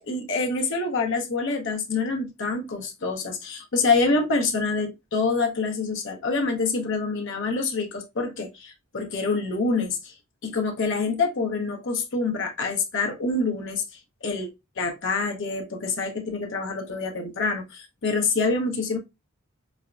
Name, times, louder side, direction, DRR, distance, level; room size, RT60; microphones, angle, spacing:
voice 1, 0.0-10.1 10.4-13.8 14.2-14.5 14.8-19.0, left 3 dB, 60° left, 0.7 m, -26 dB
4.0 x 2.1 x 2.3 m
head